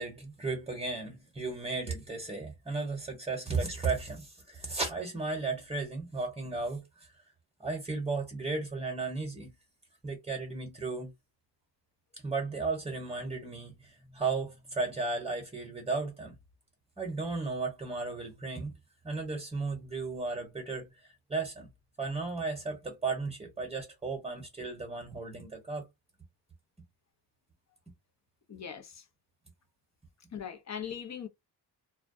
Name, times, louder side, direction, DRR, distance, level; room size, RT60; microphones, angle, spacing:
voice 1, 0.0-7.2 7.6-9.5 10.0-11.1 12.2-16.3 17.0-18.7 19.0-21.7 22.0-25.9, right 3 dB, 15° right, 0.9 m, -35 dB
voice 2, 28.5-29.0 30.3-31.3, left 8 dB, 40° left, 0.7 m, -40 dB
2.3 x 2.2 x 2.6 m
cardioid pair, 75°, 43 cm